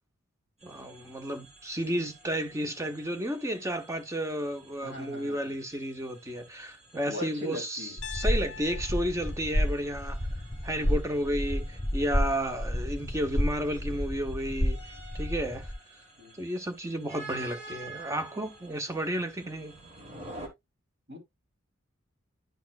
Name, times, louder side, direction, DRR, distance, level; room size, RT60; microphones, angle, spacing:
voice 1, 0.6-10.2 10.6-14.8 15.1-15.7 16.4-19.7, equal, 15° right, 0.7 m, -32 dB
sound 1, 0.6-20.5, right 2 dB, 30° right, 1.5 m, -50 dB
voice 2, 4.8-5.5 7.0-8.0 10.8-10.9 16.2-16.4 21.1-21.2, left 2 dB, 55° right, 2.9 m, -40 dB
Piano, 8.0-12.1, left 7 dB, 55° left, 0.6 m, -47 dB
sound 2, 8.0-15.7, equal, 15° left, 1.2 m, -30 dB
10.5 x 4.2 x 2.3 m
head